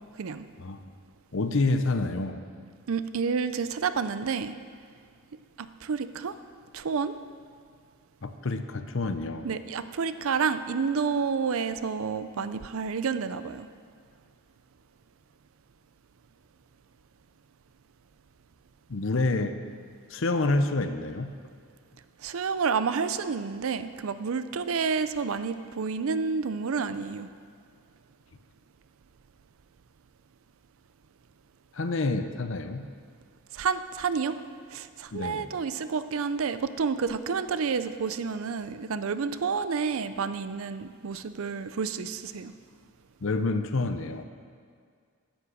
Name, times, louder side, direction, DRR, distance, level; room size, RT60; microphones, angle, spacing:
voice 1, 1.3-2.4 8.2-9.5 18.9-19.6 20.1-21.3 31.7-32.8 35.1-35.5 43.2-44.2, left 2 dB, 60° left, 9 dB, 0.7 m, -28 dB
voice 2, 2.9-4.6 5.6-6.3 6.7-7.1 9.4-13.7 22.2-27.3 33.5-34.4 34.7-42.5, right 5 dB, 70° right, 12 dB, 0.5 m, -29 dB
10.0 x 8.5 x 6.3 m, 2.1 s
head